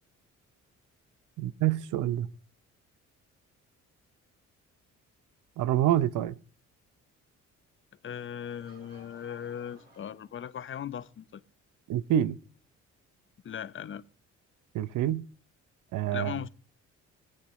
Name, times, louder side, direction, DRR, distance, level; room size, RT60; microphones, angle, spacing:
voice 1, 1.4-2.3 5.6-6.3 11.9-12.4 14.7-15.2 15.9-16.3, right 12 dB, 80° right, 0.7 m, -27 dB
voice 2, 8.0-11.4 13.4-14.0 16.1-16.5, left 9 dB, 40° left, 0.7 m, -38 dB
Laughter / Crowd, 8.1-11.0, right 1 dB, 35° right, 6.7 m, -59 dB
22.5 x 8.6 x 3.2 m
cardioid pair, 90°, 30 cm